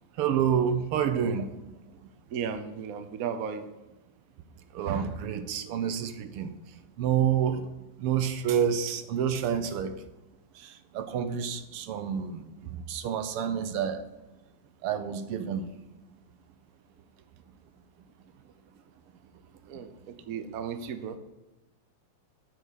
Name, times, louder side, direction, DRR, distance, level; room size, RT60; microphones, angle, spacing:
voice 1, 0.2-1.5 1.9-2.0 4.7-6.6 7.0-7.7 8.0-9.9 10.5-14.0 14.8-15.7, right 8 dB, 85° right, 9 dB, 1.7 m, -28 dB
voice 2, 2.3-3.7 19.7-21.2, right 7 dB, 65° right, 8 dB, 0.8 m, -35 dB
8.1 x 5.3 x 6.4 m, 1.1 s
omnidirectional pair, 2.4 m